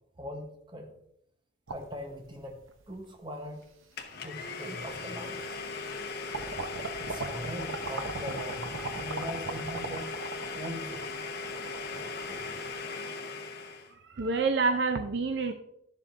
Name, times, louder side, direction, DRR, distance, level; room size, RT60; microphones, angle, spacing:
voice 1, 0.2-0.9 1.7-2.6 2.9-3.6 4.2-5.5 6.9-10.2 10.5-11.0 11.9-12.5, equal, 25° right, 4 dB, 1.0 m, -41 dB
sound 1, 1.7-2.8 3.6-3.7 4.9-5.0 5.4-6.0 6.3-12.8, right 3 dB, 85° right, 0.8 m, -39 dB
Domestic sounds home sounds, 4.0-13.9, left 4 dB, 50° left, 1.0 m, -38 dB
voice 2, 14.0-15.5, right 4 dB, 60° right, 7 dB, 0.5 m, -27 dB
11.5 x 7.3 x 2.6 m, 0.75 s
head